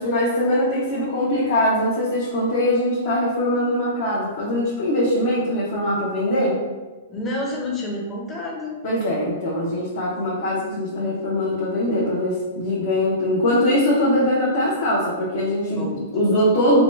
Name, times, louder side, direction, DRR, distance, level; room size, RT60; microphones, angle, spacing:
voice 1, 0.0-6.6 8.8-16.8, left 1 dB, 60° left, -7 dB, 0.8 m, -22 dB
voice 2, 7.1-8.8 15.8-16.0, left 2 dB, 20° left, -2 dB, 0.7 m, -29 dB
2.9 x 2.3 x 3.0 m, 1.3 s
hypercardioid pair, 135°, 0 cm